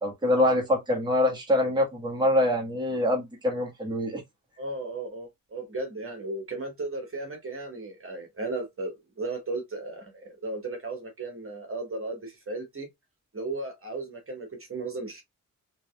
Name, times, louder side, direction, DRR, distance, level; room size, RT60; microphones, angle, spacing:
voice 1, 0.0-4.2, left 1 dB, 15° right, 1.5 m, -25 dB
voice 2, 4.6-12.9 13.3-15.2, right 2 dB, 40° right, 1.6 m, -35 dB
3.8 x 3.3 x 2.4 m
wide cardioid pair, 100°, 34 cm